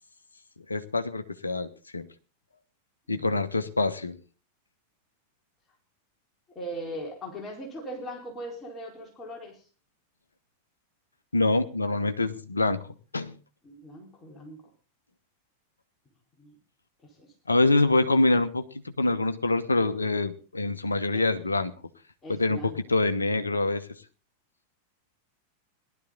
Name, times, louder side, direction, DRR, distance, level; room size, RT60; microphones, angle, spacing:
voice 1, 0.7-2.1 3.1-4.2 11.3-12.8 13.1-13.3 17.5-21.7 22.3-22.6 22.9-23.8, left 2 dB, 80° left, 10 dB, 1.1 m, -25 dB
voice 2, 6.5-9.7 13.6-14.6 16.4-16.5 17.0-17.3 21.1-21.3 22.2-22.8, equal, 20° left, 0 dB, 4.2 m, -39 dB
18.5 x 12.0 x 3.8 m, 0.36 s
figure-of-eight pair, 90°, 0 cm